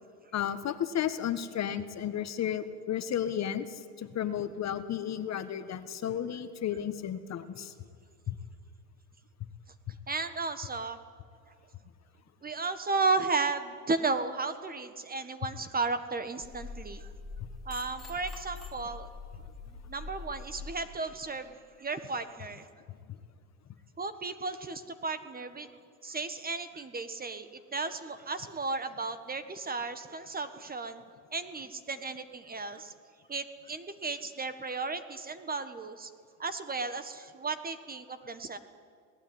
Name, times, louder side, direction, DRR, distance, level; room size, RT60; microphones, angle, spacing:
voice 1, 0.3-7.7 8.3-8.4, left 9 dB, 35° left, 10 dB, 1.6 m, -33 dB
voice 2, 10.1-11.0 12.4-17.1 17.6-19.1 19.9-22.7 24.0-31.0 31.3-32.9 33.3-36.1 36.4-38.6, right 3 dB, 20° right, 11 dB, 1.5 m, -34 dB
sound 1, 16.4-20.7, left 3 dB, ahead, 6.1 m, -44 dB
26.5 x 19.0 x 9.6 m, 2.2 s
supercardioid pair, 110°, 49 cm